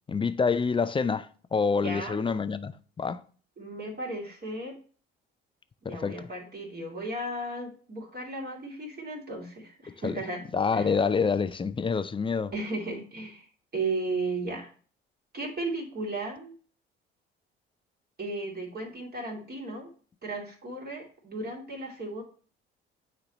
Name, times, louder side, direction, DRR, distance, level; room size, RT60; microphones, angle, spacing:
voice 1, 0.1-3.2 5.8-6.3 10.0-10.2 10.5-12.5, left 5 dB, 15° left, 0.5 m, -27 dB
voice 2, 1.8-2.3 3.6-4.7 5.8-10.4 10.7-11.0 12.5-13.5 13.7-14.7 15.3-16.6 18.2-19.9 20.2-22.2, right 2 dB, 30° right, 2.7 m, -35 dB
9.5 x 4.1 x 3.0 m
figure-of-eight pair, 55°, 30 cm